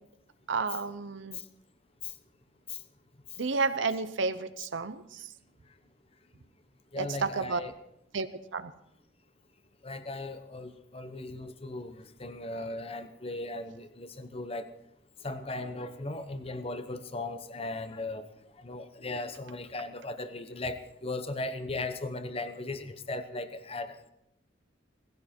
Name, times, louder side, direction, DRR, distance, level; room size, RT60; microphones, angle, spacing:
voice 1, 0.5-1.4 3.4-5.3 7.0-7.6 8.1-8.7, right 4 dB, 70° right, 11 dB, 0.7 m, -31 dB
voice 2, 6.9-7.7 9.8-14.7 15.2-18.3 18.6-24.0, left 2 dB, 30° left, 10 dB, 0.9 m, -37 dB
18.5 x 16.0 x 4.4 m, 0.80 s
head